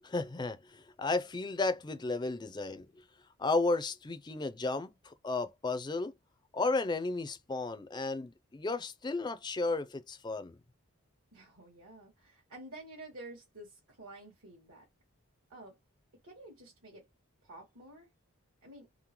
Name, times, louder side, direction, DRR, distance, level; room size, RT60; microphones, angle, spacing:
voice 1, 0.0-2.8 3.4-6.1 6.5-10.5, left 3 dB, 20° left, 0.3 m, -33 dB
voice 2, 11.3-14.9 15.5-15.8 16.2-17.0 17.4-18.1 18.6-18.9, right 2 dB, 75° right, 1.5 m, -50 dB
3.6 x 2.1 x 2.9 m
head